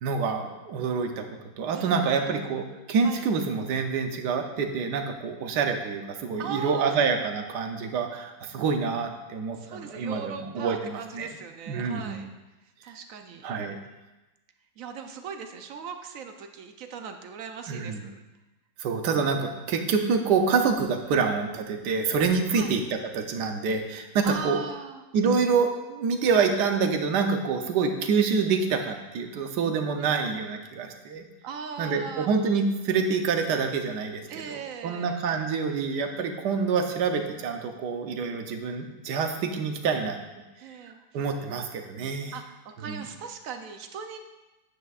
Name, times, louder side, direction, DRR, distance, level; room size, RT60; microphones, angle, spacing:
voice 1, 0.0-1.3 1.6-11.3 11.7-12.2 13.4-13.8 17.7-18.0 18.8-24.6 25.1-31.2 31.8-40.2 41.1-42.3 42.9-43.0, right 5 dB, 90° right, 5 dB, 1.4 m, -27 dB
voice 2, 1.7-2.3 3.0-3.2 6.4-7.1 9.6-12.3 12.8-13.5 14.8-18.1 22.5-22.7 24.2-25.0 30.0-30.2 31.4-32.3 34.3-35.1 40.6-41.3 42.3-44.2, right 6 dB, 65° right, 6 dB, 1.0 m, -39 dB
9.3 x 8.2 x 2.4 m, 1.1 s
omnidirectional pair, 1.7 m